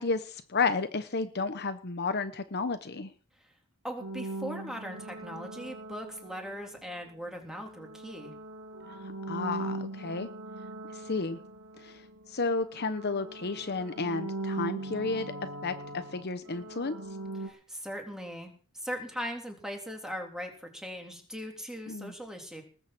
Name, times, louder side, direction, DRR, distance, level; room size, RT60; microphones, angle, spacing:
voice 1, 0.0-3.1 9.0-10.3 10.9-11.4 11.8-15.3 15.6-16.9 21.9-22.1, left 4 dB, 50° left, 10 dB, 1.0 m, -32 dB
voice 2, 3.8-8.3 17.4-22.6, equal, 5° right, 2 dB, 3.5 m, -39 dB
sound 1, 4.0-6.9 7.6-12.4 12.6-17.5, right 2 dB, 70° right, 2.5 m, -40 dB
20.0 x 7.1 x 7.8 m, 0.39 s
head